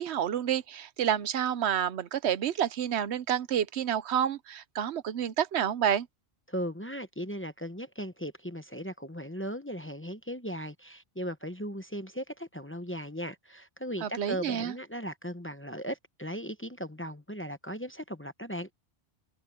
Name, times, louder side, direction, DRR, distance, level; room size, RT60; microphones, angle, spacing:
voice 1, 0.0-6.1 14.0-14.7, right 9 dB, 80° right, 1.0 m, -29 dB
voice 2, 6.5-18.7, equal, 15° left, 0.8 m, -37 dB
omnidirectional pair, 1.1 m